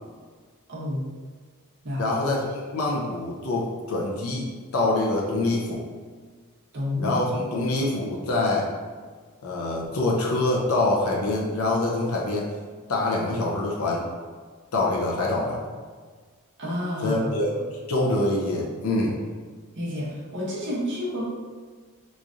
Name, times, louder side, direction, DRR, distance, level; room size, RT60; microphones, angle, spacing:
voice 1, 0.7-1.1 1.8-2.1 6.7-7.7 16.6-17.6 19.7-21.3, left 1 dB, 55° right, -6 dB, 1.0 m, -30 dB
voice 2, 2.0-4.5 4.7-5.8 7.0-8.7 9.4-12.4 12.9-14.0 14.7-15.6 17.0-17.5 17.9-19.1, left 2 dB, 75° left, -3 dB, 0.6 m, -25 dB
3.1 x 2.6 x 3.6 m, 1.5 s
head